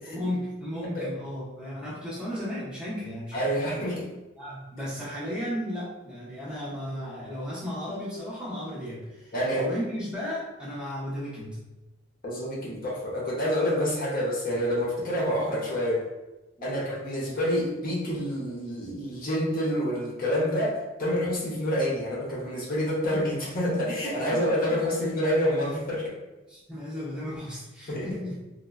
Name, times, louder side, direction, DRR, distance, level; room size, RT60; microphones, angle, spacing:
voice 1, 0.1-3.8 4.4-11.6 16.6-16.9 24.3-24.8 26.5-28.4, equal, 5° right, -8 dB, 0.6 m, -35 dB
voice 2, 3.3-4.1 9.3-9.6 12.2-16.0 16.6-26.1 27.9-28.1, equal, 45° left, -4 dB, 0.6 m, -27 dB
2.9 x 2.0 x 2.3 m, 1.1 s
head